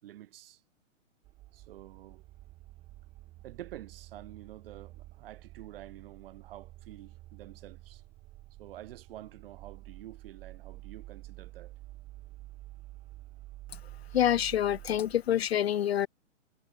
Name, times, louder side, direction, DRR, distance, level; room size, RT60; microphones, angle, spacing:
voice 1, 0.0-0.6 1.5-2.2 3.4-8.0 8.6-11.7, right 13 dB, 45° right, 4.4 m, -48 dB
sound 1, 1.2-15.5, right 17 dB, 15° right, 0.8 m, -50 dB
voice 2, 14.1-16.1, left 10 dB, 55° left, 0.5 m, -26 dB
figure-of-eight pair, 130°, 38 cm